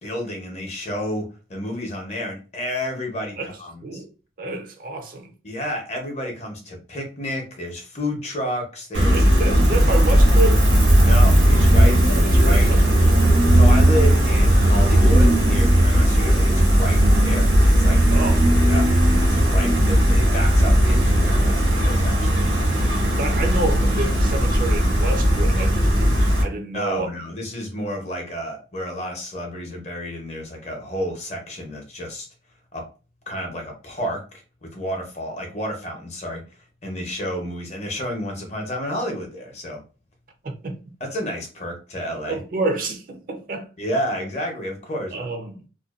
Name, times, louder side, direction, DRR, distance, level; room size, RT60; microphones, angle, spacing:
voice 1, 0.0-4.0 5.4-9.3 11.0-12.0 12.5-12.7 13.5-18.0 18.7-18.8 19.2-22.5 26.7-32.3 32.7-32.8 33.3-36.4 36.8-39.8 41.0-42.4 43.8-45.3, equal, 35° left, 0.7 m, -30 dB
voice 2, 4.4-5.3 9.1-10.6 11.8-13.0 18.1-18.5 22.5-27.1 40.4-40.9 42.3-43.7 45.1-45.6, right 2 dB, 50° right, 0.4 m, -29 dB
Gull seagull, 8.9-26.4, equal, 85° right, 1.2 m, -16 dB
2.5 x 2.2 x 2.4 m
head